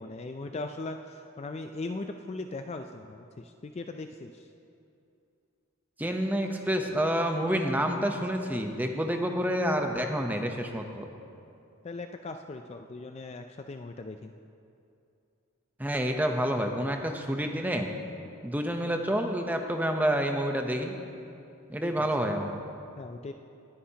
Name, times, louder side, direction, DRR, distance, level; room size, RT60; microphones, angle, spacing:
voice 1, 0.0-4.5 11.8-14.3 21.8-22.1 23.0-23.3, left 3 dB, 30° left, 6 dB, 0.3 m, -39 dB
voice 2, 6.0-11.1 15.8-17.9 18.4-21.0 21.7-22.6, equal, 10° right, 4 dB, 0.7 m, -28 dB
20.0 x 10.0 x 2.8 m, 2.6 s
head